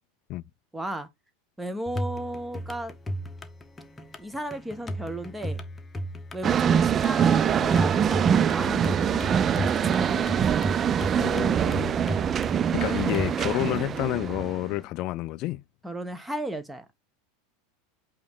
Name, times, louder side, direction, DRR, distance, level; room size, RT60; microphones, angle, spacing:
voice 1, 0.7-1.1 1.6-2.9 4.2-5.6 6.3-9.3 9.7-10.4 15.8-16.8, right 1 dB, 10° right, 1.0 m, -35 dB
sound 1, 1.9-13.4, equal, 15° left, 1.1 m, -36 dB
sound 2, 6.4-14.7, right 8 dB, 30° right, 0.3 m, -24 dB
voice 2, 11.2-11.9 12.7-15.6, left 17 dB, 50° left, 0.3 m, -29 dB
8.3 x 3.0 x 4.0 m
figure-of-eight pair, 85°, 0 cm